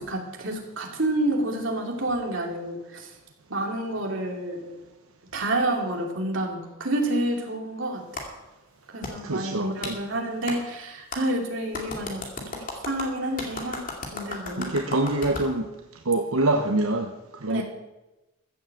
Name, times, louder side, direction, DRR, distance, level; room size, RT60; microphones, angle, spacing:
voice 1, 0.0-3.1 3.5-4.8 5.3-8.0 8.9-12.2 12.5-13.8 14.1-14.8 17.5-17.6, right 1 dB, 65° right, 1 dB, 2.8 m, -29 dB
Clapping, 8.2-8.3 9.0-9.1 9.8-10.0 10.5-10.6 11.1-11.2 11.7-15.5, left 2 dB, 40° left, 2.5 m, -35 dB
voice 2, 9.2-10.0 14.6-15.7 16.1-17.1 17.4-17.6, right 2 dB, 85° right, 3 dB, 1.0 m, -25 dB
15.0 x 7.7 x 8.0 m, 1.0 s
head